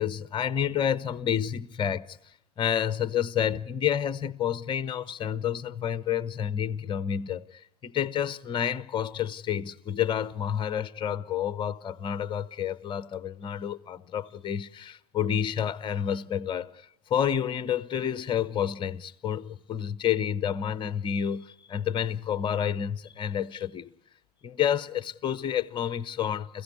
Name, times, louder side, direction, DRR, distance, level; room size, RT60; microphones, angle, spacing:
voice 1, 0.0-2.2 2.6-16.7 17.1-23.9 24.4-26.6, left 9 dB, 25° left, 1.0 m, -29 dB
29.5 x 16.0 x 9.5 m
figure-of-eight pair, 95°, 20 cm